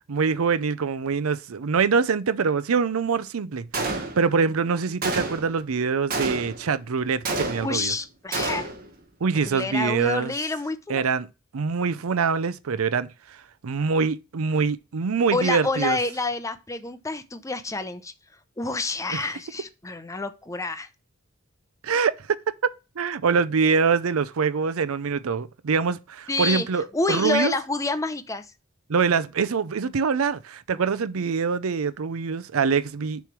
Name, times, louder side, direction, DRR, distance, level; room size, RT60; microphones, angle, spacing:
voice 1, 0.1-7.9 9.2-10.3 10.9-11.3 11.5-16.0 19.1-19.2 21.8-22.4 23.0-27.5 28.9-33.3, right 5 dB, 85° right, 0.5 m, -24 dB
Gunshot gunfire, 3.7-4.4 5.0-5.6 6.1-6.7 7.2-7.9 8.3-8.9, right 3 dB, 45° right, 1.3 m, -29 dB
voice 2, 7.6-8.7 9.5-11.0 15.3-18.1 18.6-20.9 26.3-26.7 26.9-28.5, left 3 dB, 15° left, 0.6 m, -28 dB
6.9 x 3.2 x 6.0 m
head